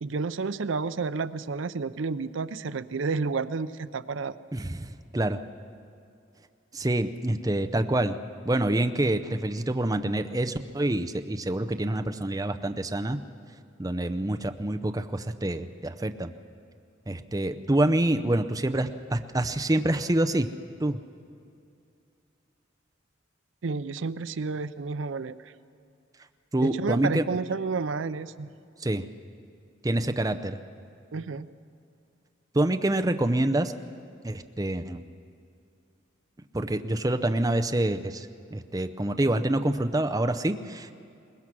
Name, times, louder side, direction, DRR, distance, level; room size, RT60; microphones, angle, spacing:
voice 1, 0.0-4.3 23.6-25.3 26.6-28.5 31.1-31.5, right 4 dB, 80° right, 14 dB, 0.5 m, -30 dB
voice 2, 4.5-5.4 6.7-8.2 8.4-13.2 13.8-16.3 17.1-20.5 20.8-21.0 26.5-27.2 28.8-29.1 29.8-30.6 32.5-33.7 34.2-35.0 36.5-40.9, right 1 dB, 20° right, 7 dB, 0.6 m, -26 dB
22.0 x 20.0 x 6.1 m, 2.5 s
head